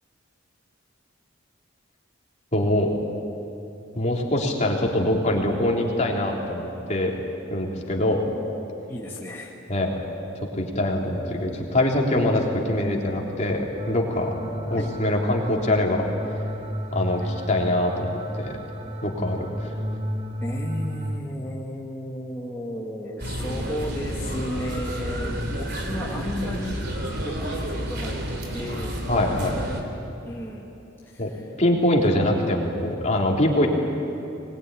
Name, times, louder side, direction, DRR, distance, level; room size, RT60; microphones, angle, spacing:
voice 1, 2.5-2.9 4.0-7.2 7.5-8.2 9.7-9.9 10.3-16.1 16.9-18.6 19.0-19.7 29.1-29.6 31.2-31.3 31.6-33.7, left 1 dB, 35° left, -1 dB, 3.6 m, -24 dB
voice 2, 8.9-9.5 14.7-14.9 20.4-26.9 27.2-29.0 30.3-30.7 31.0-31.5 32.0-32.1, equal, 10° left, -5 dB, 2.1 m, -34 dB
sound 1, 13.8-21.2, equal, 35° right, 1.6 m, -32 dB
sound 2, 23.2-29.8, equal, 55° right, 3.5 m, -30 dB
23.5 x 21.0 x 10.0 m, 2.9 s
head